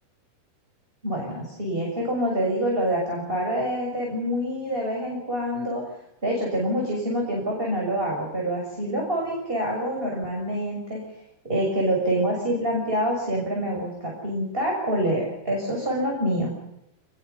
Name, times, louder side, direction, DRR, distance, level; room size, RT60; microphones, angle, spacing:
voice 1, 1.0-5.8 6.2-11.0 11.4-16.5, equal, 10° right, -1 dB, 6.5 m, -26 dB
27.0 x 22.0 x 7.0 m, 0.81 s
omnidirectional pair, 5.5 m